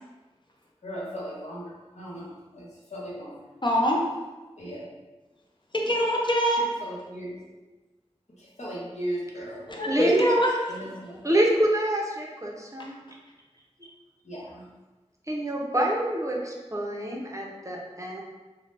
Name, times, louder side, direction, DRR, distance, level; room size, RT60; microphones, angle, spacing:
voice 1, 0.8-3.4 4.6-4.9 6.8-7.4 8.4-10.1 10.7-11.2 14.2-14.6, equal, 75° left, -6 dB, 0.8 m, -37 dB
voice 2, 3.6-4.0 5.9-6.6 9.7-10.8, equal, 45° left, -2 dB, 0.4 m, -23 dB
voice 3, 9.9-10.2 11.2-13.0 15.3-18.2, right 1 dB, 25° right, -2 dB, 0.5 m, -26 dB
2.7 x 2.1 x 3.2 m, 1.2 s
wide cardioid pair, 45°, 12 cm